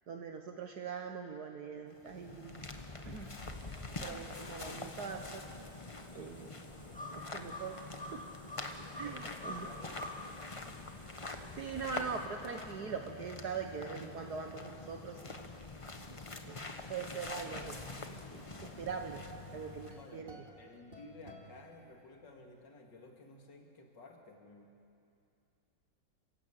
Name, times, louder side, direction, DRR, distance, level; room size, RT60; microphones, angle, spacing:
voice 1, 0.1-2.7 3.1-3.3 4.0-5.4 6.1-6.5 7.1-8.2 9.0-9.7 11.5-15.4 16.1-16.2 16.4-16.6 16.9-18.0 18.3-19.2 19.5-20.3, right 6 dB, 65° right, 4 dB, 1.6 m, -42 dB
sound 1, 1.9-20.2, left 3 dB, 20° left, 1.0 m, -45 dB
sound 2, 3.3-12.3, left 1 dB, 5° left, 2.3 m, -50 dB
voice 2, 6.5-7.3 8.8-10.9 19.9-24.7, left 3 dB, 75° left, 2 dB, 3.0 m, -55 dB
sound 3, 17.6-22.4, equal, 30° right, 2.4 m, -57 dB
29.0 x 16.0 x 8.7 m, 2.6 s
omnidirectional pair, 1.9 m